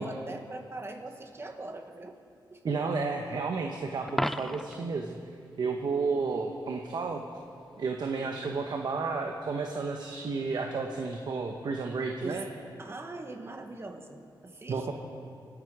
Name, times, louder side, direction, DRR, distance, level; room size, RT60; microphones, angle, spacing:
voice 1, 0.0-2.2 2.5-3.0 12.2-12.5 12.8-14.9, right 2 dB, 30° right, 4 dB, 1.6 m, -41 dB
voice 2, 2.6-5.2 5.6-7.2 7.8-12.4 14.7-14.9, right 4 dB, 60° right, 3 dB, 1.1 m, -32 dB
Coin (dropping), 4.1-4.9 11.0-11.2, equal, 5° left, 0.4 m, -33 dB
26.0 x 10.0 x 4.9 m, 2.4 s
cardioid pair, 90°, 8 cm